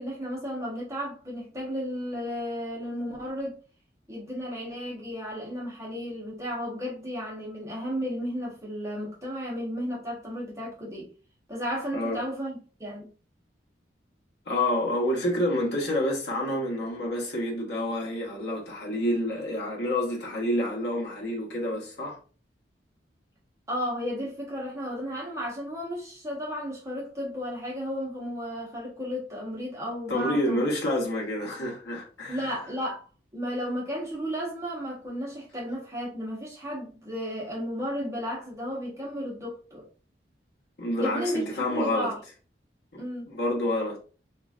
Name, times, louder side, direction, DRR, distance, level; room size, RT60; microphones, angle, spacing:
voice 1, 0.0-3.6 4.1-11.1 11.5-13.1 23.7-30.6 32.3-33.0 33.3-39.9 41.0-41.4 41.7-42.2 43.0-43.3, equal, 15° right, 1.0 m, -33 dB
voice 2, 14.5-22.2 30.1-32.5 40.8-42.1 42.9-44.0, left 1 dB, 65° left, 1.0 m, -28 dB
3.1 x 2.4 x 2.4 m
head